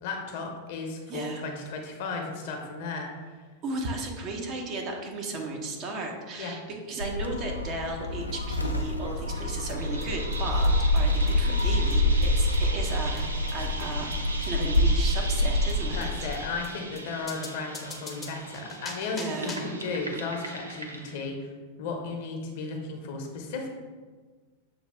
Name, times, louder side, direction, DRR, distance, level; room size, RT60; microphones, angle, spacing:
voice 1, 0.0-3.3 6.4-6.6 15.9-21.5 21.8-23.7, left 3 dB, 50° left, 2 dB, 0.7 m, -35 dB
voice 2, 1.1-1.4 3.6-14.1 14.4-16.3 19.1-19.6, right 2 dB, 35° right, 1 dB, 0.7 m, -35 dB
Gull seagull, 7.0-16.4, left 1 dB, 85° left, 0.3 m, -26 dB
sound 1, 9.7-9.8 10.0-10.1 10.3-10.4 10.6-10.7 11.0-11.1 11.3-11.4 11.6-11.7 11.9-12.0 12.2-12.3 12.5-12.6 12.9-13.0 13.2-13.3 13.5-13.6 13.8-13.9 14.1-14.2 14.4-14.5 14.7-14.8 15.1-15.2 15.4-15.5 15.7-15.8 16.0-16.1 16.3-16.4 16.6-16.7 17.0-17.1 17.3-19.8, left 3 dB, 15° left, 0.6 m, -43 dB
sound 2, 9.8-21.3, right 2 dB, 75° right, 0.4 m, -39 dB
6.4 x 2.3 x 3.3 m, 1.4 s
figure-of-eight pair, 90°, 0 cm